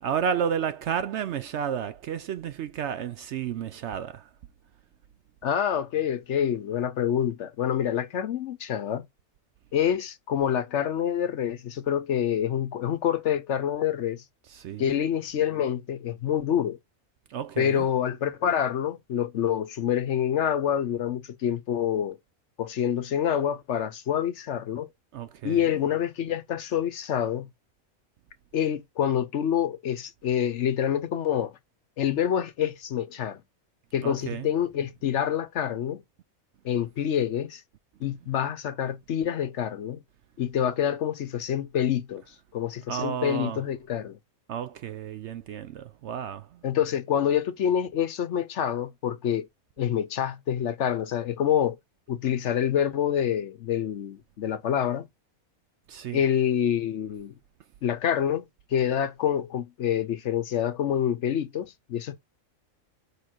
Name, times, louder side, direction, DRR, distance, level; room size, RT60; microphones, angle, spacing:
voice 1, 0.0-4.2 14.5-14.9 17.3-17.9 25.1-25.7 34.0-34.5 42.9-43.6 44.5-46.5 55.9-56.2, right 8 dB, 65° right, 0.7 m, -31 dB
voice 2, 5.4-9.1 9.7-14.2 14.8-16.8 17.6-22.2 22.6-24.9 25.4-27.5 28.5-31.5 32.0-33.4 33.9-36.0 36.6-37.6 38.0-40.0 40.4-42.2 42.5-44.2 46.6-49.5 49.8-51.8 52.1-55.1 56.1-57.3 57.8-58.5 58.7-62.2, left 9 dB, 60° left, 0.9 m, -27 dB
5.0 x 4.4 x 4.4 m
omnidirectional pair, 1.5 m